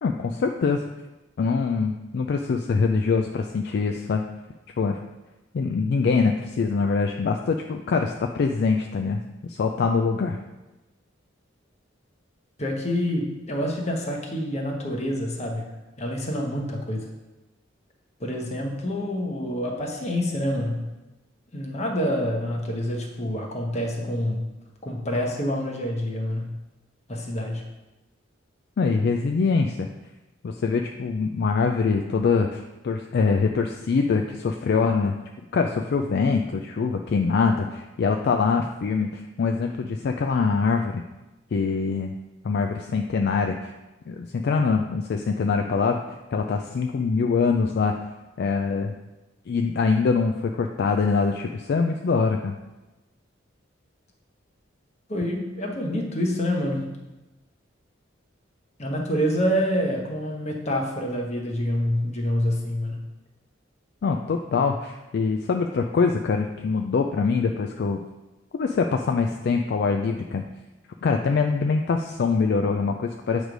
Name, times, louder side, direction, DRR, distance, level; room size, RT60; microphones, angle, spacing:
voice 1, 0.0-0.8 1.4-4.2 4.8-5.0 5.5-9.2 9.5-10.4 28.8-29.9 30.4-35.2 35.5-41.0 41.5-42.1 42.4-43.7 44.1-46.0 46.3-48.0 48.4-48.9 49.5-52.6 64.0-68.0 68.5-70.5 71.0-73.5, left 4 dB, 55° left, 4 dB, 0.3 m, -24 dB
voice 2, 12.6-15.6 16.0-17.1 18.2-20.9 21.5-24.5 24.8-26.5 27.1-27.7 55.1-56.9 58.8-63.0, equal, 35° left, 1 dB, 1.0 m, -27 dB
8.1 x 3.2 x 5.1 m, 1.1 s
head